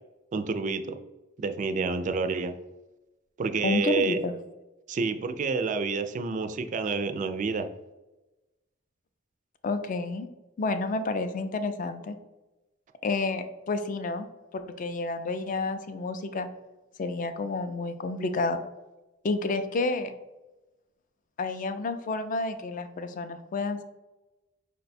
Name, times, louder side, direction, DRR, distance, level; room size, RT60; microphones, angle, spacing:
voice 1, 0.3-1.0 1.4-2.5 3.4-4.2 4.9-7.7, right 4 dB, 40° right, 8 dB, 0.3 m, -28 dB
voice 2, 3.6-4.3 9.6-10.3 10.6-12.2 13.0-14.3 14.5-16.5 17.0-18.6 19.2-20.1 21.4-23.8, left 3 dB, 40° left, 9 dB, 0.4 m, -30 dB
5.0 x 2.2 x 4.1 m, 1.0 s
head